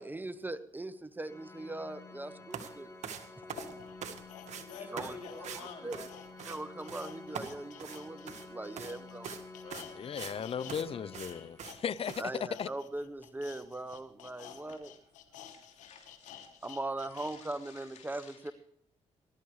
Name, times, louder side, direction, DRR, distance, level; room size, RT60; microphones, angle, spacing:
voice 1, 0.0-2.9 4.9-5.2 5.5-6.0 6.4-9.4 12.2-14.9 16.6-18.5, right 2 dB, 15° right, 1.1 m, -40 dB
Organ, 1.2-12.0, left 3 dB, 20° left, 3.2 m, -51 dB
sound 1, 2.5-2.7 3.0-4.2 4.5-4.7 5.0-5.1 5.4-5.6 5.9-6.6 6.9-7.1 7.3-8.5 8.8-8.9 9.2-9.4 9.7-10.4 10.7-10.8 11.1-11.3 11.6-11.8 12.1-12.2, right 7 dB, 65° right, 1.7 m, -42 dB
sound 2, 2.7-2.8 3.4-10.8 11.1-17.4 17.7-17.8, left 10 dB, 90° left, 1.4 m, -52 dB
voice 2, 4.5-6.1 14.4-14.8 15.4-16.7 17.1-18.5, left 5 dB, 70° left, 3.3 m, -51 dB
voice 3, 9.6-12.2 12.6-12.7, left 7 dB, 50° left, 0.6 m, -37 dB
20.0 x 12.0 x 3.3 m
supercardioid pair, 65°, 13 cm